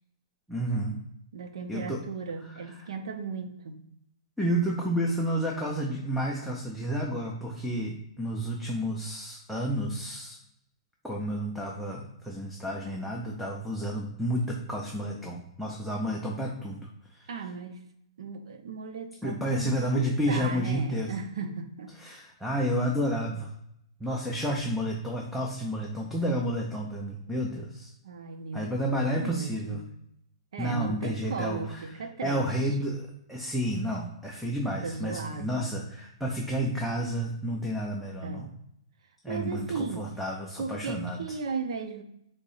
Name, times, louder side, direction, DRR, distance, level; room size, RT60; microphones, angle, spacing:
voice 1, 0.5-1.0 1.7-2.0 2.5-2.9 4.4-10.4 11.0-17.3 19.2-21.1 22.0-23.5 24.0-27.9 28.5-29.8 30.6-31.8 32.2-38.4 39.2-41.2, equal, ahead, -2 dB, 0.3 m, -31 dB
voice 2, 1.3-3.8 17.3-17.8 18.2-22.0 28.0-29.9 30.5-32.5 32.8-32.9 34.8-35.7 38.2-38.5 39.3-40.1 40.6-42.0, right 4 dB, 70° right, 7 dB, 0.5 m, -36 dB
3.7 x 2.0 x 3.8 m, 0.75 s
hypercardioid pair, 155°, 3 cm